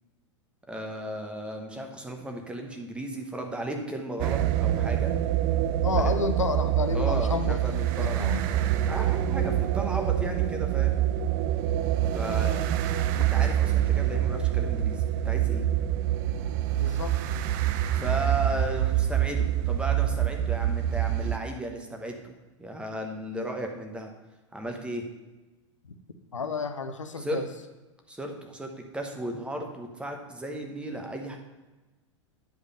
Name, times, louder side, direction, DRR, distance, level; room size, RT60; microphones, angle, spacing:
voice 1, 0.7-5.1 5.9-6.1 6.9-11.0 12.1-12.6 13.1-15.7 17.9-22.3 22.6-24.1 24.5-25.0 27.2-27.4 28.1-31.4, right 1 dB, 5° right, 3 dB, 1.0 m, -35 dB
sound 1, 4.2-21.4, right 12 dB, 40° right, 0.4 m, -26 dB
voice 2, 5.8-8.4 16.8-17.5 26.3-27.4, left 4 dB, 80° left, 8 dB, 0.6 m, -31 dB
9.2 x 5.0 x 5.4 m, 1.1 s
figure-of-eight pair, 95°, 16 cm